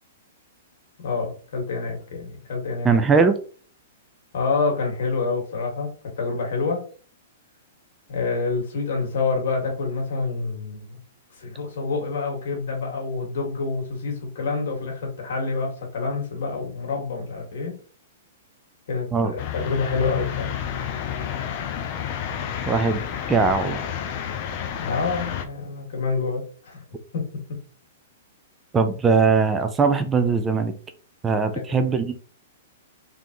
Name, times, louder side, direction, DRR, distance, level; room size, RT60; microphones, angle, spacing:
voice 1, 1.0-3.0 4.3-5.9 6.2-6.8 8.1-11.0 11.4-17.8 18.9-20.7 24.8-26.8 27.1-27.6 31.5-31.9, left 4 dB, 65° left, 0 dB, 1.9 m, -27 dB
voice 2, 2.8-3.3 19.1-19.3 22.6-23.0 23.3-23.8 28.7-30.7 31.2-32.2, right 4 dB, 15° right, 8 dB, 0.5 m, -20 dB
sound 1, 19.4-25.5, left 9 dB, 45° left, 0.7 m, -30 dB
3.7 x 3.7 x 3.0 m, 0.41 s
hypercardioid pair, 120°, 0 cm